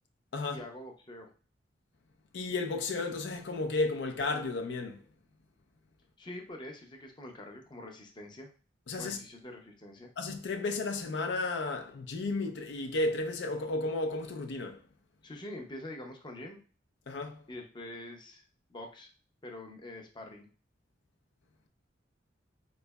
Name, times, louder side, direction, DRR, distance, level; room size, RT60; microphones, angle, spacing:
voice 1, 0.4-1.3 6.2-8.5 9.0-10.1 15.2-16.6 17.5-18.4 18.7-19.1 19.4-20.5, left 1 dB, 25° left, 0.5 m, -45 dB
voice 2, 2.3-5.0 8.9-9.2 10.2-14.8 17.1-17.4, left 2 dB, 80° left, 0.5 m, -33 dB
3.5 x 3.1 x 2.2 m
head